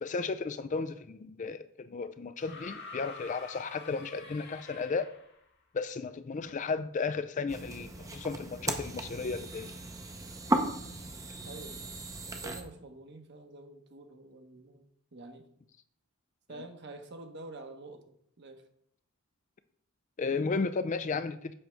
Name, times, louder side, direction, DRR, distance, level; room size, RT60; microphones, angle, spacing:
voice 1, 0.0-5.1 5.7-9.7 20.2-21.5, left 4 dB, 35° left, 12 dB, 0.3 m, -34 dB
sound 1, 2.4-5.4 6.7-6.8, left 4 dB, 50° left, 1.3 m, -47 dB
sound 2, 7.5-12.6, right 2 dB, 15° right, 0.6 m, -36 dB
voice 2, 11.4-12.0 12.2-15.5 16.5-18.6, right 2 dB, 50° right, 6 dB, 1.0 m, -48 dB
7.8 x 3.4 x 6.2 m, 0.68 s
head